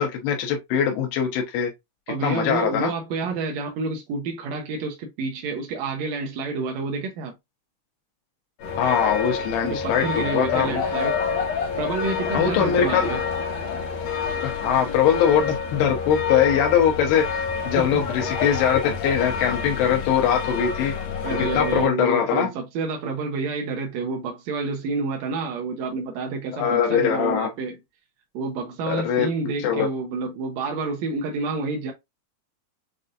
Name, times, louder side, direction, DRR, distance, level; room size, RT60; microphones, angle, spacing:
voice 1, 0.0-1.7 2.2-2.9 8.8-10.8 12.3-13.1 14.4-20.9 21.4-22.5 26.5-27.5 28.9-29.3 29.6-29.9, left 8 dB, 90° left, 3.0 m, -22 dB
voice 2, 2.1-7.3 9.6-11.2 11.8-13.2 17.8-18.0 21.2-27.8 28.3-31.9, right 4 dB, 80° right, 1.6 m, -29 dB
sound 1, 8.6-21.9, left 6 dB, 60° left, 2.0 m, -28 dB
7.4 x 2.6 x 2.5 m
omnidirectional pair, 4.5 m